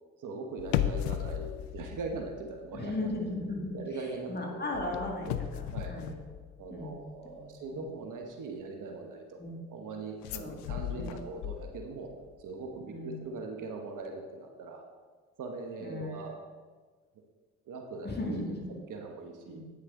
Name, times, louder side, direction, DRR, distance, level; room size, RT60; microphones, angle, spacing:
voice 1, 0.2-3.1 3.7-4.6 5.3-5.4 5.7-6.0 6.6-9.4 9.7-12.1 12.4-14.8 15.4-16.3 17.7-19.6, right 3 dB, 60° right, 3 dB, 1.2 m, -41 dB
sound 1, 0.6-2.9 3.1-3.4 4.7-7.0 10.2-12.1 12.4-12.5, left 12 dB, 85° left, 0.5 m, -36 dB
voice 2, 2.7-6.2 6.7-7.8 9.4-9.6 10.4-11.2 12.9-13.1 15.8-16.2 18.0-18.7 19.5-19.6, left 2 dB, 30° left, -1 dB, 2.2 m, -37 dB
9.3 x 6.5 x 3.8 m, 1.4 s
hypercardioid pair, 50°, 35 cm